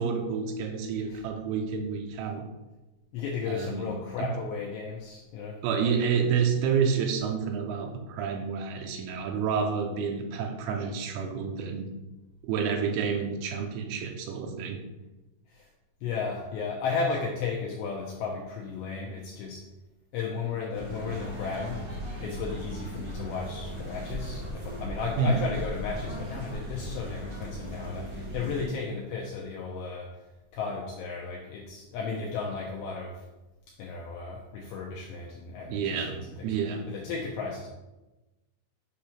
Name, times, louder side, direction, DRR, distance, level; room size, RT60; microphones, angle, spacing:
voice 1, 0.0-2.4 3.5-3.9 4.2-4.3 5.6-11.9 12.4-14.8 25.2-25.5 35.6-36.8, right 6 dB, 80° right, 3 dB, 3.1 m, -29 dB
voice 2, 3.1-6.0 15.5-15.7 16.0-19.6 20.1-21.9 22.2-30.1 30.5-33.2 33.8-36.5 36.9-37.7, left 5 dB, 80° left, -1 dB, 2.6 m, -34 dB
sound 1, 20.7-28.6, equal, 30° right, 1.4 m, -37 dB
8.4 x 3.1 x 5.7 m, 1.0 s
omnidirectional pair, 5.7 m